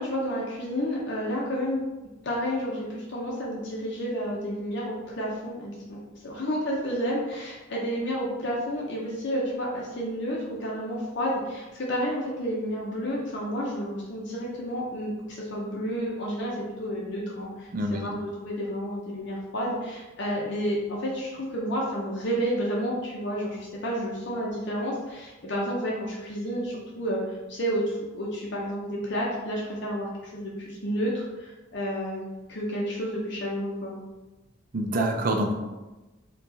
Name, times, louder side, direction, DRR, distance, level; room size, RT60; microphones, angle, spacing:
voice 1, 0.0-1.8 2.2-27.2 27.5-32.2 32.5-34.0, equal, 55° left, -4 dB, 0.6 m, -30 dB
voice 2, 34.7-35.5, right 1 dB, 45° right, 3 dB, 0.4 m, -26 dB
4.6 x 2.3 x 2.7 m, 1.1 s
head